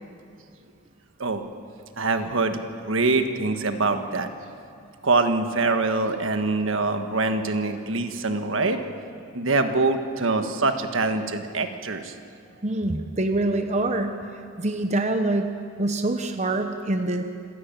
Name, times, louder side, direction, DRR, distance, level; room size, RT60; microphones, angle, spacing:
voice 1, 2.0-2.6 2.9-4.3 5.0-8.9 9.3-12.1, right 3 dB, 75° right, 7 dB, 1.5 m, -24 dB
voice 2, 12.6-14.2 14.6-15.5 15.8-17.2, right 2 dB, 35° right, 6 dB, 0.9 m, -25 dB
27.0 x 12.5 x 9.0 m, 2.4 s
head